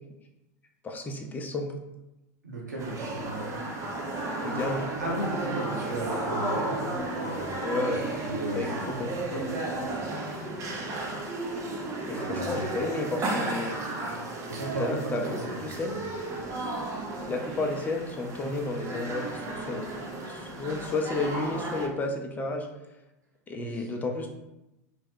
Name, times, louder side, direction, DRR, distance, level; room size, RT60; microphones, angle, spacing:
voice 1, 0.8-1.7 4.4-4.9 7.6-8.1 8.5-8.7 8.9-9.1 12.1-13.8 14.8-15.9 17.2-19.9 20.3-22.7 23.5-24.3, left 2 dB, 20° left, 3 dB, 0.5 m, -32 dB
voice 2, 2.4-3.6 5.0-7.8 8.2-9.9 12.2-12.7 14.5-15.9 23.6-23.9, right 1 dB, 90° right, -4 dB, 1.0 m, -36 dB
sound 1, 2.8-21.9, right 2 dB, 35° right, 0.6 m, -33 dB
3.1 x 2.2 x 3.5 m, 0.96 s
hypercardioid pair, 95°, 9 cm